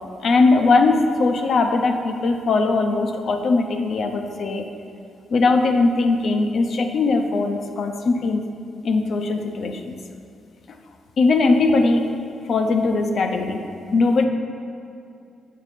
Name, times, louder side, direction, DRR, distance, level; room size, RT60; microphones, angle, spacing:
voice 1, 0.2-4.7 5.3-8.4 8.8-9.9 11.2-12.1 12.5-13.6 13.9-14.3, left 3 dB, 60° left, 5 dB, 0.6 m, -20 dB
7.3 x 5.5 x 4.2 m, 2.5 s
supercardioid pair, 55°, 0 cm